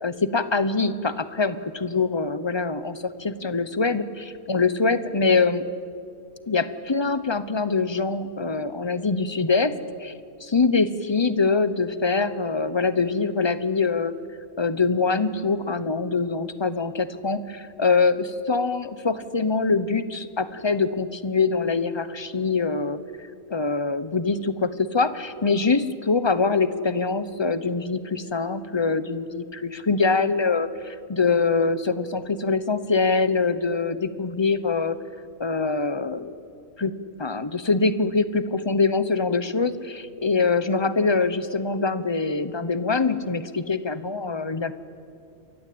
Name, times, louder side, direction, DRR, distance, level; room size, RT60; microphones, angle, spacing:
voice 1, 0.0-5.7 6.5-10.1 10.4-14.1 14.6-35.0 35.4-36.3 36.8-36.9 37.2-44.7, left 4 dB, 25° left, 13 dB, 0.8 m, -24 dB
28.0 x 23.5 x 8.6 m, 2.4 s
omnidirectional pair, 1.4 m